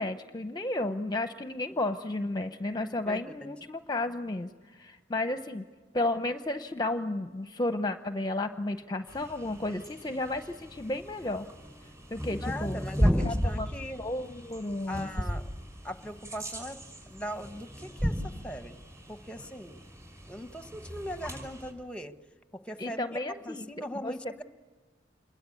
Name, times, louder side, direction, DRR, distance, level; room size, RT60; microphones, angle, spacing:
voice 1, 0.0-5.6 5.9-11.5 12.1-13.7 14.0-15.1 22.8-23.6 24.0-24.1, left 2 dB, 25° left, 9 dB, 0.7 m, -33 dB
voice 2, 3.0-3.5 12.4-14.0 14.9-15.5 15.8-18.8 19.1-19.8 20.3-22.1 22.5-23.2 23.4-24.4, equal, 5° left, 9 dB, 1.0 m, -40 dB
sound 1, 9.1-21.7, equal, 15° right, 5.4 m, -35 dB
27.5 x 22.0 x 8.5 m, 1.4 s
head